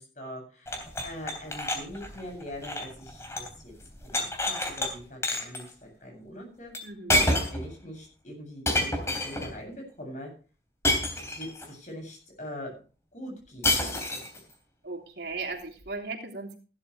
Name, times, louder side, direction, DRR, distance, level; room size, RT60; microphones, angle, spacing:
voice 1, 0.0-3.7 4.0-6.7 7.3-10.3 11.2-12.7 13.1-14.2, equal, 40° left, 2 dB, 7.7 m, -42 dB
sound 1, 0.7-3.6 3.8-4.9 5.2-5.6 6.7-6.8 7.1-7.7 8.7-9.5 10.8-11.7 13.6-14.4, left 1 dB, 15° left, 3.1 m, -28 dB
voice 2, 6.8-7.4 14.8-16.6, right 3 dB, 75° right, 1 dB, 3.3 m, -37 dB
15.5 x 12.0 x 3.3 m, 0.37 s
head